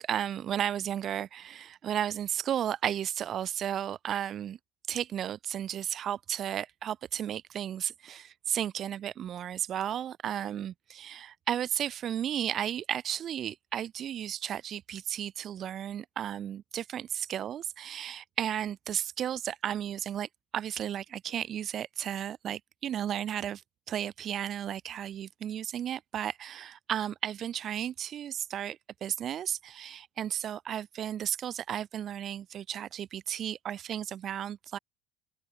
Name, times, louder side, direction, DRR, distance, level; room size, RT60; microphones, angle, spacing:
voice 1, 0.0-4.6 4.9-23.6 23.9-34.8, right 10 dB, 45° right, 0.9 m, -34 dB
open air
hypercardioid pair, 85°, 0 cm